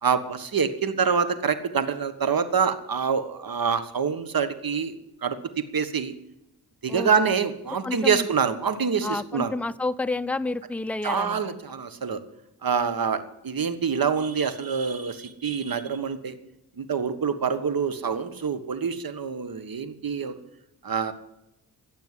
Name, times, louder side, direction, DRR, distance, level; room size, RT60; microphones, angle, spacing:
voice 1, 0.0-4.9 5.2-5.4 5.7-6.1 6.8-9.5 11.0-12.2 12.6-16.3 16.8-20.4 20.8-21.1, right 6 dB, 55° right, 12 dB, 1.5 m, -26 dB
voice 2, 6.9-7.4 7.8-8.2 9.0-11.5, left 2 dB, 5° left, 12 dB, 0.6 m, -30 dB
15.5 x 6.8 x 9.6 m, 0.89 s
cardioid pair, 55°, 42 cm